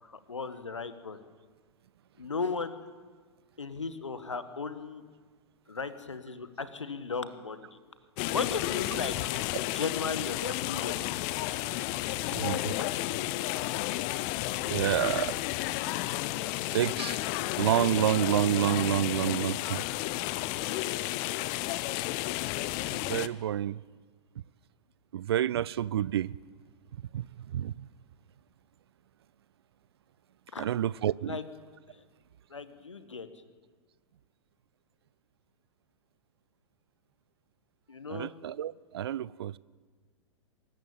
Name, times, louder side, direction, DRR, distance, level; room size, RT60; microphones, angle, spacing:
voice 1, 0.0-1.2 2.2-2.8 3.6-5.0 5.7-7.7 8.3-9.3 9.6-10.9 12.4-12.8 30.5-30.7 31.2-31.5 31.9-32.0 32.5-33.3 37.9-38.3, left 4 dB, 75° left, 1.6 m, -36 dB
sound 1, 8.2-23.3, left 17 dB, 35° left, 0.7 m, -32 dB
voice 2, 12.3-12.7 14.7-15.4 16.7-17.2 17.6-19.8 22.9-23.8 25.1-26.3 27.1-27.3 27.5-27.7 30.6-31.4 38.1-39.6, right 11 dB, 55° right, 0.5 m, -28 dB
24.5 x 14.0 x 8.9 m
figure-of-eight pair, 100°, 16 cm